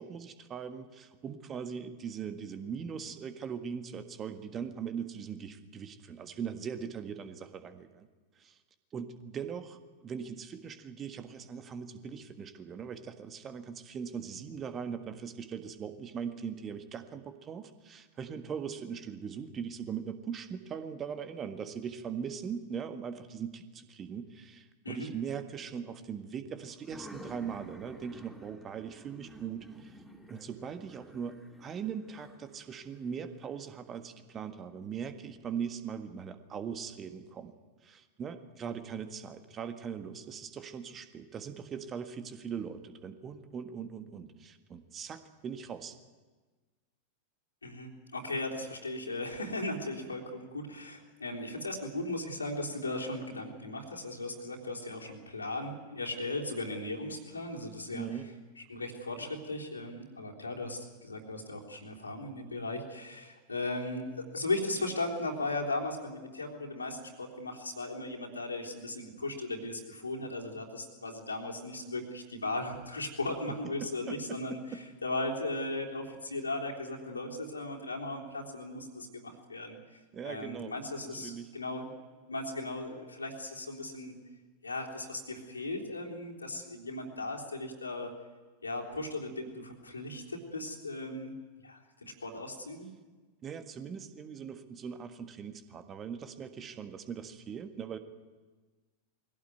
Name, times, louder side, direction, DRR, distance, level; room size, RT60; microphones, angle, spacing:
voice 1, 0.0-8.1 8.4-8.6 8.9-30.0 30.3-37.5 37.8-46.0 57.9-58.3 73.5-74.8 80.1-80.8 81.0-81.5 93.4-98.0, right 7 dB, 25° right, 9 dB, 1.6 m, -40 dB
sound 1, 26.7-34.3, right 1 dB, 5° left, 3.7 m, -52 dB
voice 2, 47.6-58.1 58.7-79.8 80.2-81.9 82.3-84.1 84.6-88.1 88.6-91.3 91.6-92.9, left 2 dB, 80° left, 0 dB, 3.7 m, -37 dB
22.0 x 17.0 x 9.4 m, 1.3 s
figure-of-eight pair, 90°, 0 cm